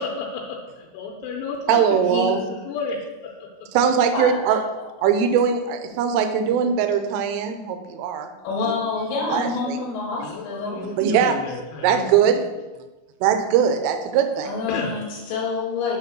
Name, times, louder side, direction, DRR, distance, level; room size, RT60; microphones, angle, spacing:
voice 1, 0.0-2.9 10.2-12.1 14.7-14.9, left 4 dB, 85° left, -1 dB, 3.1 m, -32 dB
voice 2, 1.7-2.4 3.7-4.6 5.0-8.3 9.3-9.8 11.0-12.5 13.2-14.5, right 7 dB, 80° right, 6 dB, 2.6 m, -21 dB
voice 3, 4.1-4.9 8.4-10.9 14.4-16.0, left 4 dB, 65° left, -4 dB, 2.9 m, -27 dB
8.3 x 3.5 x 6.0 m, 1.1 s
omnidirectional pair, 5.7 m